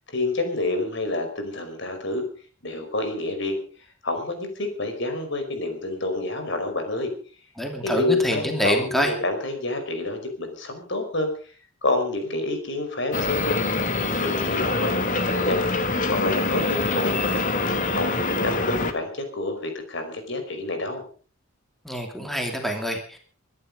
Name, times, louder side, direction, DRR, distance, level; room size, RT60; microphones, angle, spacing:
voice 1, 0.1-2.2 2.6-3.6 4.0-7.1 7.8-11.5 11.8-13.6 14.0-15.6 16.1-17.5 17.9-21.0, left 2 dB, 60° left, 6 dB, 5.2 m, -28 dB
voice 2, 7.6-9.1 21.8-23.2, equal, ahead, 3 dB, 2.8 m, -26 dB
sound 1, 13.1-18.9, left 3 dB, 40° left, 2.1 m, -25 dB
24.0 x 11.0 x 5.3 m, 0.41 s
head